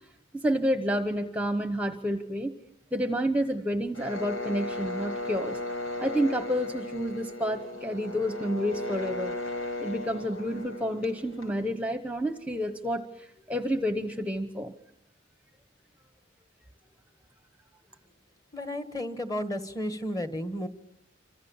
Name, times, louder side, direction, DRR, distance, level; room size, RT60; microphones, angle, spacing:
voice 1, 0.3-2.5 2.9-5.6 6.0-9.4 9.8-14.7, equal, 5° right, 8 dB, 1.0 m, -29 dB
sound 1, 3.9-11.7, left 2 dB, 80° left, 5.9 m, -36 dB
voice 2, 18.5-20.7, left 1 dB, 20° left, 9 dB, 1.8 m, -33 dB
28.5 x 26.0 x 7.3 m, 0.81 s
head